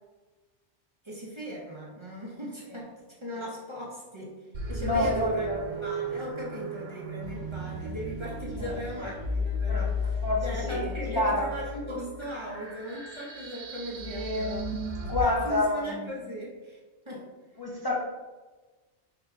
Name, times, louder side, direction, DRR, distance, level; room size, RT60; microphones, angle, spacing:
voice 1, 1.0-5.5 5.8-14.6 15.2-16.8 17.1-17.3, left 1 dB, 30° right, -4 dB, 0.7 m, -38 dB
sound 1, 4.5-15.2, left 1 dB, 85° right, 1.2 m, -34 dB
voice 2, 4.7-5.6 8.6-9.0 9.7-9.9 10.2-11.4 14.0-16.1 17.6-17.9, left 1 dB, 35° left, -4 dB, 0.4 m, -29 dB
4.8 x 2.2 x 3.5 m, 1.2 s
omnidirectional pair, 1.2 m